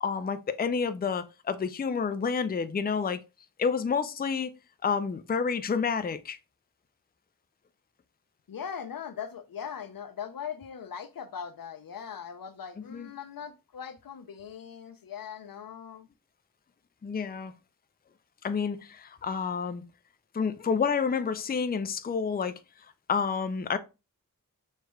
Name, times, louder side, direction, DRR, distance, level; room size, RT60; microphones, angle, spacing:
voice 1, 0.0-3.2 3.6-4.5 4.8-6.4 12.9-13.1 17.0-17.5 18.4-19.8 20.3-22.6 23.1-23.8, left 5 dB, 30° left, 0.4 m, -29 dB
voice 2, 8.5-16.1, left 7 dB, 80° left, 0.6 m, -40 dB
6.3 x 3.2 x 2.2 m
wide cardioid pair, 65°, 34 cm